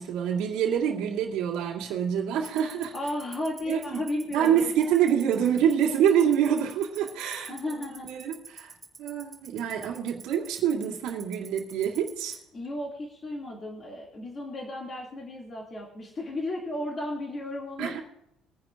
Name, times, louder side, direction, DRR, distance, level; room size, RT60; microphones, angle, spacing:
voice 1, 0.0-2.9 3.7-4.0 4.3-7.5 8.0-8.7 9.0-12.4 17.8-18.0, right 9 dB, 85° right, -3 dB, 2.4 m, -26 dB
Tick-tock, 2.4-12.3, right 5 dB, 15° right, 2.5 m, -42 dB
voice 2, 2.9-4.7 7.5-8.1 12.5-17.9, left 1 dB, 25° left, -2 dB, 2.2 m, -34 dB
22.5 x 10.5 x 2.5 m, 0.79 s
cardioid pair, 175°, 0 cm